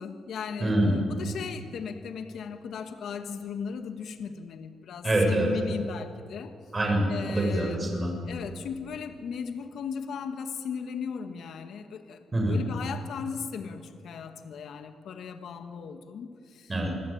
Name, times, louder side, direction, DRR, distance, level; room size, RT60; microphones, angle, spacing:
voice 1, 0.0-6.5 7.1-7.8 8.3-16.7, left 6 dB, 70° left, 7 dB, 1.9 m, -37 dB
voice 2, 0.6-1.0 5.0-5.5 6.7-8.1 12.3-12.6 16.7-16.9, right 1 dB, 25° right, 1 dB, 7.9 m, -25 dB
28.0 x 20.5 x 9.0 m, 2.2 s
cardioid pair, 105°, 0 cm